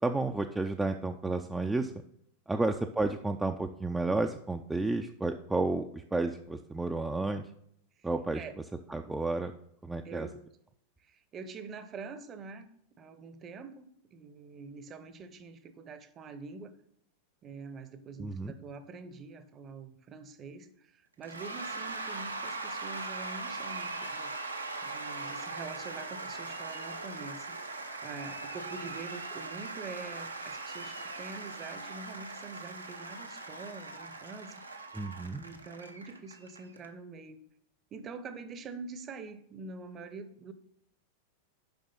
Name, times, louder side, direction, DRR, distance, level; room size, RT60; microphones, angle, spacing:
voice 1, 0.0-1.9 2.5-7.5 8.0-8.4 8.9-9.5 9.8-10.3 18.2-18.5 34.9-35.5, right 2 dB, 10° right, 5 dB, 0.4 m, -31 dB
voice 2, 10.0-10.4 11.0-12.7 13.0-16.8 17.4-24.3 24.8-34.6 35.4-37.4 37.9-40.5, right 4 dB, 25° right, 12 dB, 0.8 m, -45 dB
Cheering / Applause / Crowd, 21.2-36.9, right 3 dB, 80° right, 0.8 m, -40 dB
7.0 x 5.3 x 5.4 m, 0.70 s
figure-of-eight pair, 90°, 0 cm